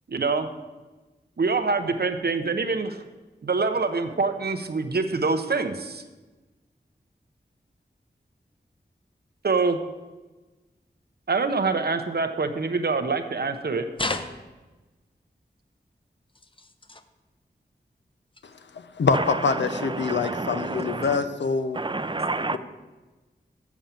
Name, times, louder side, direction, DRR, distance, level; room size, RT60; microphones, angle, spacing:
voice 1, 0.1-0.5 1.4-3.0 3.4-6.0 9.4-9.8 11.3-13.9, right 4 dB, 65° right, 8 dB, 0.8 m, -25 dB
sound 1, 14.0-14.9 16.3-17.0 18.3-18.5 19.3-19.4, left 2 dB, 30° left, 0.7 m, -33 dB
voice 2, 18.7-21.8 22.4-22.6, left 5 dB, 85° left, 10 dB, 0.6 m, -25 dB
voice 3, 20.0-21.2 21.8-22.6, right 3 dB, 25° right, 12 dB, 0.6 m, -29 dB
7.2 x 5.4 x 7.4 m, 1.2 s
cardioid pair, 45°, 18 cm